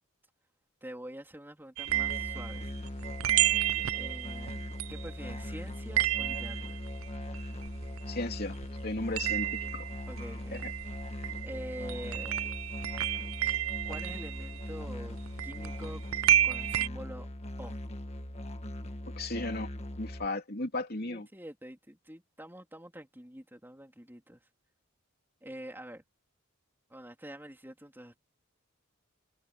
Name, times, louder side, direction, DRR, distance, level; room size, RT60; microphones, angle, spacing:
voice 1, 0.8-2.7 3.9-6.8 10.1-10.7 11.4-12.5 13.8-16.0 16.4-17.3 17.6-17.7 21.0-24.4 25.4-26.0 26.9-28.2, right 1 dB, 10° right, 3.7 m, -46 dB
sound 1, 1.8-8.4 8.6-16.9, right 12 dB, 75° right, 0.5 m, -32 dB
Musical instrument, 1.9-20.2, equal, 30° left, 1.6 m, -40 dB
voice 2, 8.1-8.6 8.8-9.9 10.5-10.7 19.2-19.7 20.0-21.3, left 2 dB, 45° left, 3.2 m, -35 dB
head